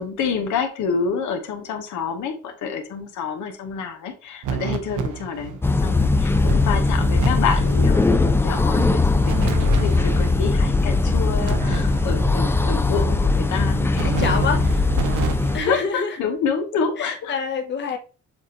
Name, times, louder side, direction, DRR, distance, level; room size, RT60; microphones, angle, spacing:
voice 1, 0.0-14.4 15.6-17.4, left 6 dB, 75° left, 1.0 m, -28 dB
sound 1, 4.4-5.7 6.0-6.1 6.5-7.3 7.6-7.9 9.2-10.4 11.4-12.4 13.9-15.9, right 7 dB, 80° right, 0.8 m, -30 dB
sound 2, 5.6-15.6, left 3 dB, 10° left, 0.4 m, -19 dB
voice 2, 14.0-14.8 15.5-16.2 17.0-18.0, left 5 dB, 35° left, 0.8 m, -26 dB
7.1 x 2.6 x 2.8 m
cardioid pair, 90°, 30 cm